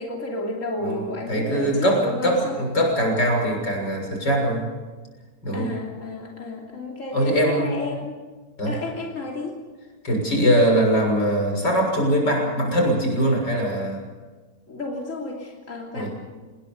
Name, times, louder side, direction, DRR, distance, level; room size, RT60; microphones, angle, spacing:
voice 1, 0.0-2.6 5.5-8.1 8.7-9.6 14.7-16.2, left 2 dB, 45° left, -1 dB, 3.5 m, -32 dB
voice 2, 0.8-4.6 5.4-5.7 7.1-7.7 8.6-8.7 10.0-14.0 15.9-16.1, equal, 85° left, 1 dB, 7.4 m, -22 dB
27.0 x 21.0 x 5.4 m, 1.4 s
omnidirectional pair, 1.8 m